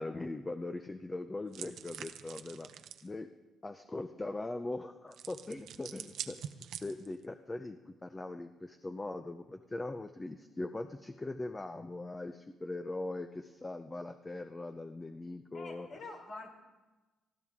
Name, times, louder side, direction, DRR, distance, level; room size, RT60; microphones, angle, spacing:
voice 1, 0.0-2.7 3.0-3.3 3.6-6.4 6.8-15.9, left 2 dB, 20° left, 8 dB, 0.6 m, -40 dB
sound 1, 1.5-3.1 5.1-7.2, right 9 dB, 80° right, 0.7 m, -45 dB
voice 2, 15.5-16.5, left 3 dB, 65° left, 1 dB, 3.9 m, -46 dB
20.5 x 13.5 x 3.6 m, 1.2 s
cardioid pair, 90°, 0 cm